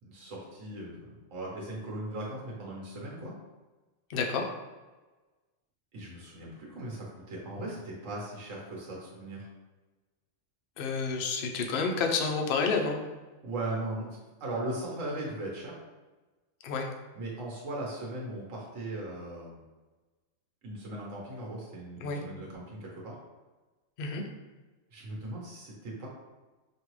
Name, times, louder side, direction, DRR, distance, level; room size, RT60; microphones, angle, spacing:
voice 1, 0.0-3.3 5.9-9.5 13.4-14.1 14.4-15.7 17.1-19.6 20.6-23.2 24.9-26.1, right 1 dB, 70° right, -3 dB, 1.4 m, -38 dB
voice 2, 4.1-4.4 10.8-13.1 16.6-16.9 22.0-22.2 24.0-24.2, left 4 dB, 60° left, 2 dB, 0.6 m, -29 dB
5.2 x 2.4 x 3.1 m, 1.2 s
omnidirectional pair, 1.4 m